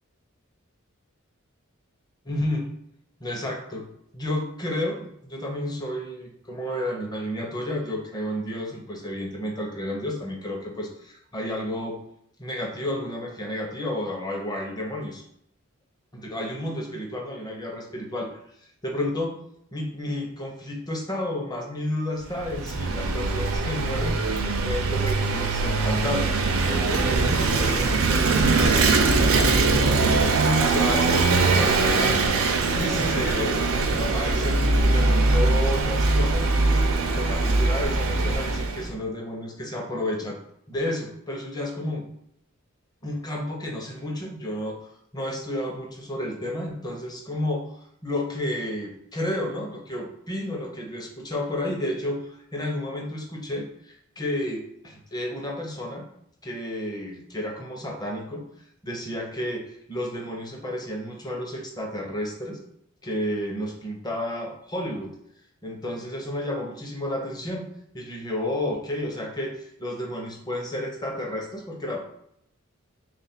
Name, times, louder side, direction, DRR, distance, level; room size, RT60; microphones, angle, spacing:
voice 1, 2.2-2.7 3.2-3.9 4.1-12.0 12.4-15.2 16.1-19.4 19.7-24.2 24.6-30.3 30.7-33.6 34.0-36.5 37.1-40.4 40.7-42.1 43.0-47.8 48.0-56.1 56.4-58.5 58.8-62.6 63.0-65.1 65.6-72.0, left 1 dB, 20° left, 0 dB, 0.7 m, -31 dB
Vehicle / Engine, 22.3-38.9, right 3 dB, 70° right, 0.4 m, -22 dB
3.4 x 2.4 x 4.2 m, 0.73 s
head